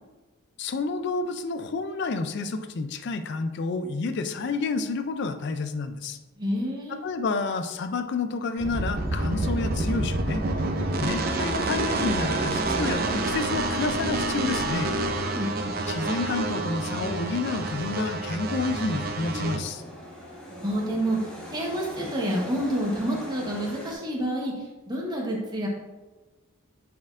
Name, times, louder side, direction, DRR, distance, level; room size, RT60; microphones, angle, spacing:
voice 1, 0.6-6.2 7.0-10.4 11.0-14.9 15.9-19.8, left 3 dB, 55° left, 9 dB, 0.4 m, -29 dB
voice 2, 6.4-7.0 15.3-15.8 20.5-25.7, right 1 dB, 20° right, -2 dB, 1.0 m, -29 dB
sound 1, 8.6-19.6, right 2 dB, 45° right, 0.5 m, -28 dB
sound 2, 16.8-23.9, equal, 5° left, 1.3 m, -43 dB
9.4 x 4.4 x 2.5 m, 1.2 s
head